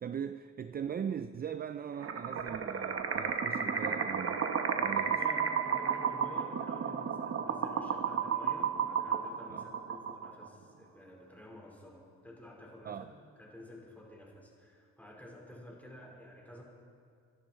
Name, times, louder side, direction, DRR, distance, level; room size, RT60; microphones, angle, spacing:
voice 1, 0.0-4.5 4.8-5.2 9.5-9.6 12.8-13.1, right 8 dB, 30° right, 0.5 m, -40 dB
sound 1, 2.0-10.5, right 7 dB, 50° right, 1.3 m, -32 dB
voice 2, 5.1-16.6, left 1 dB, 5° left, 4.5 m, -51 dB
27.5 x 11.5 x 4.5 m
cardioid pair, 90°, 30 cm